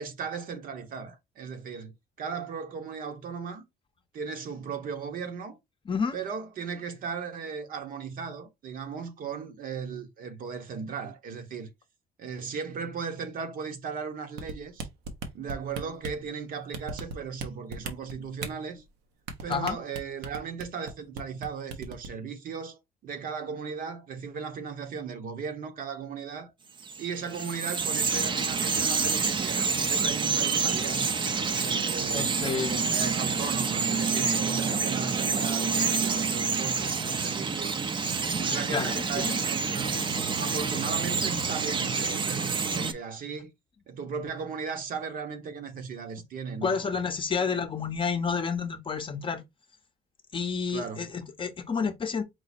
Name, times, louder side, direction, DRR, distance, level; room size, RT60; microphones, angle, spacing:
voice 1, 0.0-3.6 4.1-5.6 6.1-11.7 12.2-14.9 15.3-18.8 19.4-26.5 27.0-31.1 31.6-32.3 32.7-37.8 38.4-40.0 40.4-43.5 43.9-46.9 50.7-51.1, right 6 dB, 55° right, 1.0 m, -37 dB
sound 1, 14.4-16.2 16.7-17.5 17.7-18.5 19.3-20.9 21.2-21.5 21.7-22.1, right 3 dB, 85° right, 0.9 m, -35 dB
Bird vocalization bird call bird song, 26.8-42.9, right 5 dB, 30° right, 0.6 m, -28 dB
voice 2, 32.1-32.8 38.7-39.4 46.6-49.4 50.3-52.2, left 5 dB, 30° left, 0.7 m, -30 dB
4.7 x 2.0 x 4.1 m
cardioid pair, 110°, 17 cm